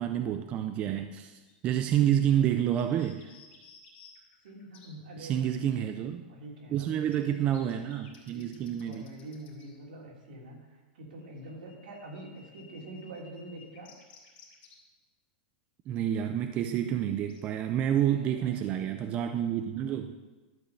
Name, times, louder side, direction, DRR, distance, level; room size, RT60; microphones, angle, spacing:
voice 1, 0.0-3.3 5.2-6.2 6.7-9.1 15.9-20.1, right 10 dB, 25° right, 7 dB, 0.4 m, -29 dB
sound 1, 1.5-1.6 2.0-2.1 2.2-2.3 2.7-4.9 6.7-9.8 11.2-14.7 17.3-18.6, left 5 dB, 30° left, 3.0 m, -57 dB
voice 2, 4.4-5.7 6.2-7.4 8.3-13.9 17.9-18.9, right 1 dB, 75° right, -2 dB, 3.2 m, -46 dB
12.0 x 5.1 x 7.0 m, 1.2 s
supercardioid pair, 165°, 5 cm